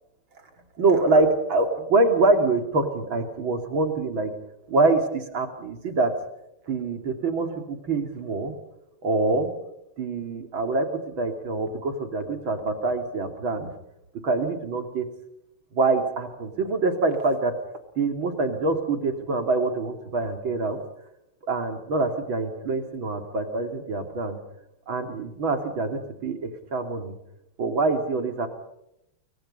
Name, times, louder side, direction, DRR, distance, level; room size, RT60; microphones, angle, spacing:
voice 1, 0.8-4.3 4.7-6.1 6.7-8.5 9.0-9.5 10.0-13.7 14.2-15.1 15.7-17.5 18.0-20.8 21.4-24.4 24.9-27.2 27.6-28.5, right 3 dB, 65° right, 6 dB, 3.6 m, -25 dB
29.0 x 24.0 x 5.5 m, 0.83 s
omnidirectional pair, 2.4 m